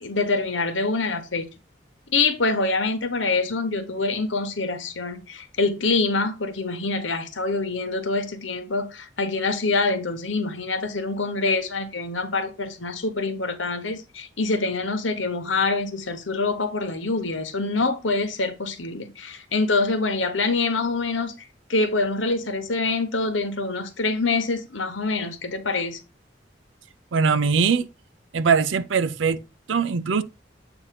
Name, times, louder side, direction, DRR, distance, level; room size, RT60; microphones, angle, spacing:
voice 1, 0.0-1.5 2.1-21.3 21.7-26.0, left 3 dB, 90° left, 1.1 m, -25 dB
voice 2, 27.1-27.9 28.3-29.4 29.7-30.2, right 5 dB, 90° right, 0.5 m, -21 dB
8.0 x 2.7 x 5.7 m
head